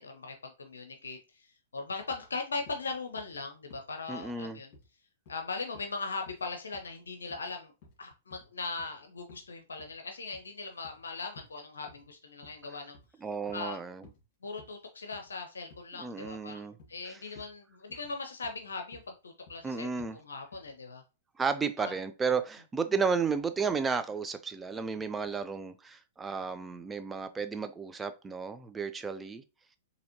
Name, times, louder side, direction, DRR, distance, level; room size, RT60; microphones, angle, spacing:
voice 1, 0.0-4.7 5.3-7.7 8.0-13.0 13.5-13.8 14.4-21.0 21.8-21.9, left 4 dB, 85° left, 0.6 m, -39 dB
sound 1, 2.1-2.3 2.7-2.8 3.2-3.4 3.7-3.9 4.2-4.4 4.7-4.9 5.3-5.4 5.7-5.9 6.3-6.5 6.7-6.9 7.3-7.5 7.8-8.0 8.3-8.5 8.8-8.9 9.3-9.5 9.8-9.9 10.3-11.0 11.4-11.5 11.9-12.1 12.4-12.6 12.9-13.1 13.5-13.7 14.0-14.2 14.6-14.7 15.1-15.3 15.7-15.8 16.2-16.5 16.8-17.0 17.4-17.5 17.9-18.1 18.4-18.6 18.9-19.1 19.5-19.7 20.0-20.1 20.5-20.7, left 3 dB, 45° left, 2.0 m, -55 dB
voice 2, 4.1-4.6 13.2-14.1 16.0-16.8 19.6-20.2 21.4-29.4, right 5 dB, 15° right, 0.4 m, -33 dB
4.1 x 2.8 x 2.8 m
hypercardioid pair, 115°, 0 cm